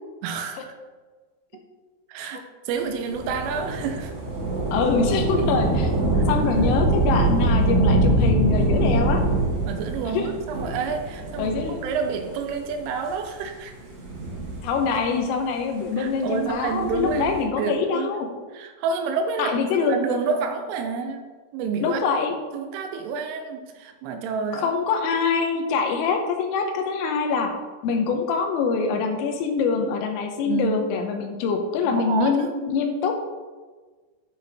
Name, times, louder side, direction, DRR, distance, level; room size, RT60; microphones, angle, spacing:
voice 1, 0.2-0.7 2.1-4.1 6.1-6.2 9.7-11.6 11.8-13.7 16.0-18.1 18.5-19.5 19.8-21.2 21.5-22.0 22.5-24.7 30.5-30.8 31.8-32.5, right 5 dB, 80° right, 5 dB, 3.1 m, -29 dB
Thunder / Rain, 3.1-12.1 12.8-12.9 13.8-15.1 16.6-17.4, right 1 dB, 55° right, 3.9 m, -23 dB
voice 2, 4.7-5.9 6.3-9.2 10.1-10.3 11.4-11.8 14.6-18.3 19.4-20.0 21.8-22.4 24.5-27.5 27.8-33.2, left 5 dB, 80° left, 4 dB, 3.4 m, -24 dB
11.5 x 5.3 x 3.4 m, 1.4 s
omnidirectional pair, 5.9 m